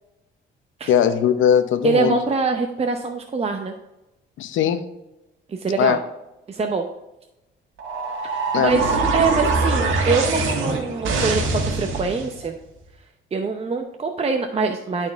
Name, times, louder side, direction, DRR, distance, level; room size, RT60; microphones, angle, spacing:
voice 1, 0.9-2.2 4.4-4.8 5.8-6.0 8.5-8.8, left 9 dB, 80° left, 10 dB, 0.7 m, -19 dB
voice 2, 1.8-3.8 5.5-6.0 6.5-6.9 8.3-12.5 13.3-15.1, right 4 dB, 30° right, 4 dB, 0.7 m, -24 dB
sound 1, 7.8-12.3, right 3 dB, 80° right, 1.6 m, -23 dB
11.5 x 4.5 x 3.5 m, 0.96 s
cardioid pair, 90°, 20 cm